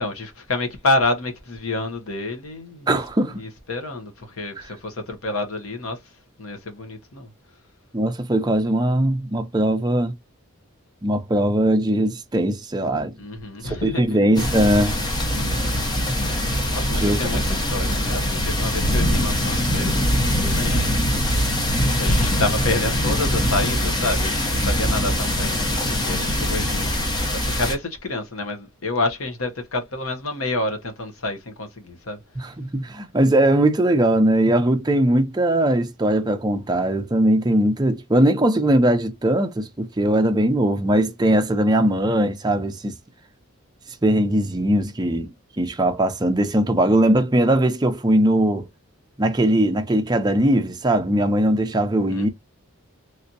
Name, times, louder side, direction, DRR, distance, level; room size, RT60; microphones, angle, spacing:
voice 1, 0.0-3.0 3.3-6.0 6.4-7.3 13.2-14.2 15.3-15.7 16.7-21.3 22.0-32.2 52.1-52.3, left 2 dB, 75° left, 1.0 m, -28 dB
voice 2, 2.9-3.4 4.6-4.7 7.9-10.2 11.0-13.1 13.6-15.0 16.9-17.4 32.4-42.9 44.0-45.3 45.6-48.7 49.2-52.3, right 1 dB, 20° right, 0.5 m, -20 dB
sound 1, 14.3-27.7, equal, 20° left, 0.7 m, -22 dB
3.3 x 2.8 x 2.6 m
head